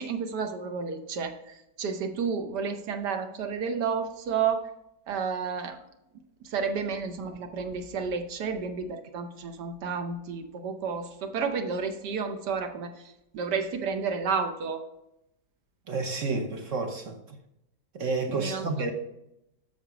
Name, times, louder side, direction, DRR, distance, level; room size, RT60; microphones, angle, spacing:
voice 1, 0.0-4.7 5.1-5.8 6.4-14.8 18.3-18.6, right 5 dB, 70° right, 1.4 m, -31 dB
voice 2, 15.9-17.4 17.9-18.9, right 3 dB, 55° right, 1.1 m, -30 dB
8.0 x 6.1 x 4.9 m
omnidirectional pair, 2.0 m